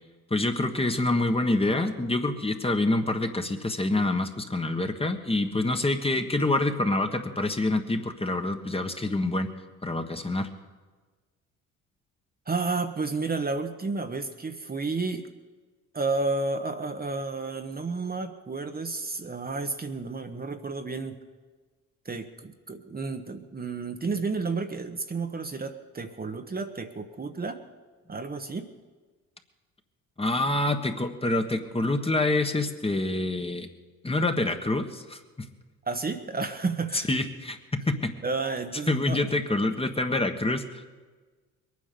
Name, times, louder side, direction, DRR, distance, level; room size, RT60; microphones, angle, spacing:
voice 1, 0.3-9.5 9.8-10.5 30.2-33.7 34.0-35.5 36.9-38.1 38.9-40.9, left 2 dB, 15° left, 6 dB, 1.4 m, -26 dB
voice 2, 12.5-15.3 15.9-21.2 22.0-27.6 28.1-28.7 35.8-37.1 38.2-39.3, right 3 dB, 25° right, 6 dB, 1.2 m, -31 dB
21.5 x 9.6 x 6.9 m, 1.4 s
supercardioid pair, 70°, 35 cm